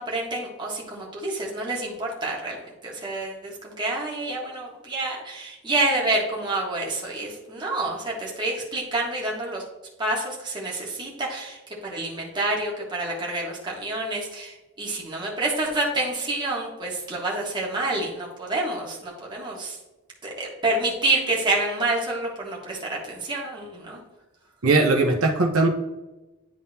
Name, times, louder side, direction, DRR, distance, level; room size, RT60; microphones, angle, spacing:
voice 1, 0.0-2.6 2.8-9.6 10.0-19.8 20.2-24.0, right 2 dB, 20° right, -3 dB, 1.5 m, -28 dB
voice 2, 24.6-25.7, right 3 dB, 85° right, 1 dB, 0.9 m, -19 dB
10.5 x 3.7 x 2.8 m, 1.1 s
head